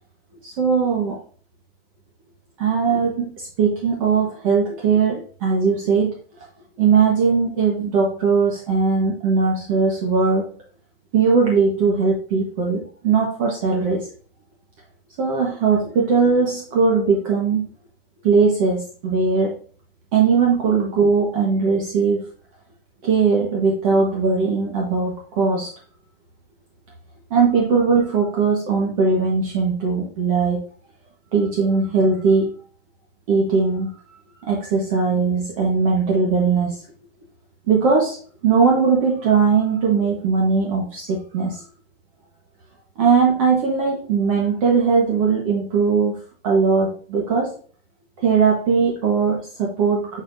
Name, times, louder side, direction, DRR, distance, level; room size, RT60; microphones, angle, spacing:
voice 1, 0.4-1.2 2.6-6.2 6.8-10.5 11.1-14.1 15.2-17.7 18.2-19.6 20.1-22.3 23.0-25.7 27.3-30.6 31.3-32.5 33.3-33.9 34.5-36.7 37.7-38.2 38.4-41.6 43.0-46.2 46.4-47.5 48.2-50.2, right 5 dB, 35° right, -2 dB, 1.3 m, -19 dB
8.1 x 4.4 x 2.7 m, 0.44 s
supercardioid pair, 170°, 30 cm